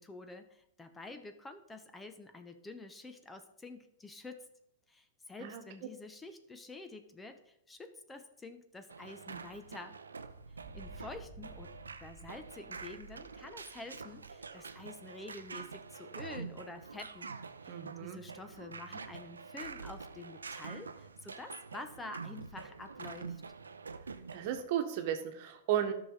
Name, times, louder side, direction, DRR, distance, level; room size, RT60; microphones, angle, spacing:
voice 1, 0.0-4.5 4.9-10.0 10.7-11.7 12.0-17.3 17.6-23.4, left 3 dB, 15° left, 8 dB, 0.9 m, -48 dB
sound 1, 8.9-24.6, right 5 dB, 90° right, 0.6 m, -46 dB
sound 2, 10.6-15.8, right 1 dB, 30° right, 1.5 m, -54 dB
voice 2, 17.7-18.2 24.3-25.9, right 10 dB, 55° right, 6 dB, 1.3 m, -34 dB
13.5 x 6.0 x 4.0 m, 0.80 s
hypercardioid pair, 110°, 0 cm